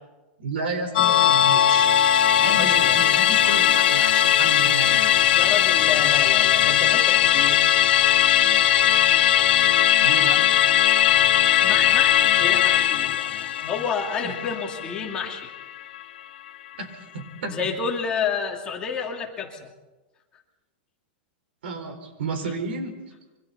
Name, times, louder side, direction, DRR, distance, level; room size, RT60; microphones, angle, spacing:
voice 1, 0.4-1.9 2.4-5.2 10.0-10.4 14.2-14.3 16.8-17.7 21.6-23.0, right 3 dB, 80° right, 6 dB, 4.5 m, -32 dB
Musical instrument, 0.9-15.6 15.9-16.0, left 11 dB, 70° left, 2.0 m, -19 dB
voice 2, 2.4-3.0 5.3-7.7 11.4-15.5 17.5-19.7, left 6 dB, 15° left, 0 dB, 2.5 m, -30 dB
26.5 x 24.5 x 4.2 m, 1.1 s
supercardioid pair, 175°, 6 cm